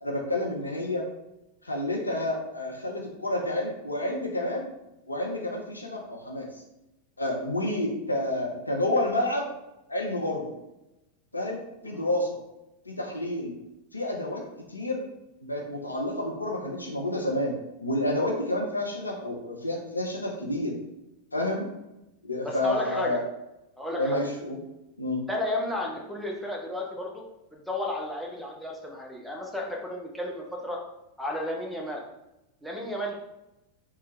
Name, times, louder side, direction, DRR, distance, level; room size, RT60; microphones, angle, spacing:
voice 1, 0.0-1.0 1.6-4.7 5.1-6.5 7.2-9.5 9.9-10.5 11.3-11.6 11.8-12.4 12.9-13.5 13.9-15.0 15.4-17.5 17.8-20.7 21.3-21.7 22.2-23.2 24.0-24.6 25.0-25.2, left 1 dB, 80° left, 0 dB, 0.5 m, -29 dB
voice 2, 22.4-23.2 23.8-24.2 25.3-27.2 27.5-30.8 31.2-32.0 32.6-33.2, left 1 dB, ahead, -2 dB, 0.6 m, -33 dB
3.1 x 2.3 x 3.0 m, 0.92 s
figure-of-eight pair, 90°, 0 cm